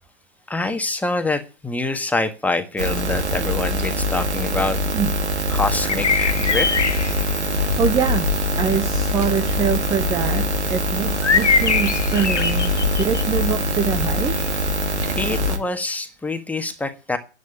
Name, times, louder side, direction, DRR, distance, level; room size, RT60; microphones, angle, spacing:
voice 1, 0.5-4.8 5.5-7.3 15.2-17.2, left 2 dB, 5° left, 1.5 m, -26 dB
sound 1, 2.8-15.6, equal, 70° right, 2.6 m, -23 dB
sound 2, 5.6-15.5, left 5 dB, 80° left, 1.5 m, -26 dB
voice 2, 7.6-8.3 8.6-14.4, right 7 dB, 10° right, 0.7 m, -24 dB
11.0 x 8.2 x 10.0 m
figure-of-eight pair, 115°, 35 cm